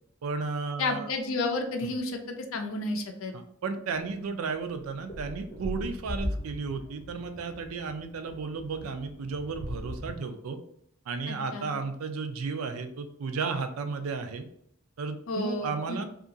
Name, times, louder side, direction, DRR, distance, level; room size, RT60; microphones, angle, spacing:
voice 1, 0.2-1.1 1.8-2.0 3.3-10.6 11.1-14.5 15.0-16.0, right 4 dB, 85° right, 8 dB, 0.4 m, -34 dB
voice 2, 0.8-3.3 11.3-11.7 15.3-16.0, left 2 dB, 70° left, 5 dB, 0.5 m, -31 dB
sound 1, 3.9-4.1 4.6-10.2, left 1 dB, 25° left, 0.6 m, -39 dB
2.8 x 2.4 x 2.6 m, 0.73 s
head